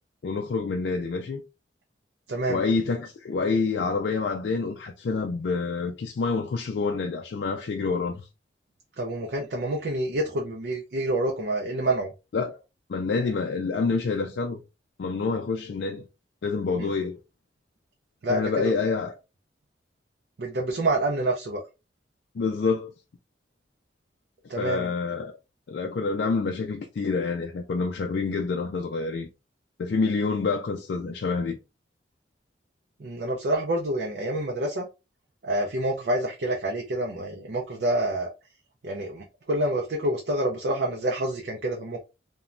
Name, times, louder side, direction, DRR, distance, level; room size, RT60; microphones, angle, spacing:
voice 1, 0.2-1.4 2.5-8.3 12.3-12.6 12.9-14.6 15.0-16.0 16.4-17.2 18.3-19.2 22.3-22.9 24.6-25.4 25.7-29.3 29.8-31.6, left 4 dB, 65° left, 0.3 m, -27 dB
voice 2, 2.3-2.6 9.0-12.1 16.8-16.9 18.2-18.7 20.4-21.6 24.5-24.9 33.0-34.9 35.4-38.3 38.8-42.0, right 1 dB, 60° right, 0.5 m, -27 dB
3.0 x 2.2 x 2.4 m
head